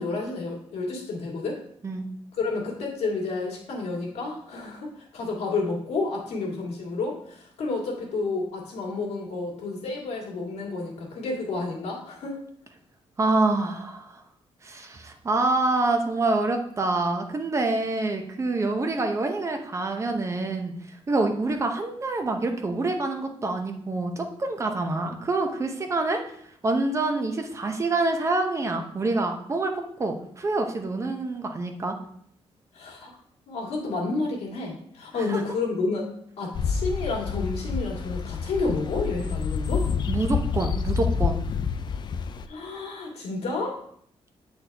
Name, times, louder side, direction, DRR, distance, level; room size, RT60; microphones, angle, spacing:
voice 1, 0.0-1.6 2.4-12.4 32.7-33.1 33.5-36.0 36.4-39.8 42.5-43.8, left 3 dB, 90° left, -1 dB, 1.9 m, -30 dB
voice 2, 13.2-14.1 14.6-20.7 21.1-26.2 26.6-31.9 35.2-35.4 40.1-41.4, right 2 dB, 25° right, 5 dB, 0.7 m, -26 dB
sound 1, 36.5-42.5, left 6 dB, 45° left, 0.4 m, -28 dB
8.1 x 4.1 x 3.4 m, 0.66 s
wide cardioid pair, 150°, 11 cm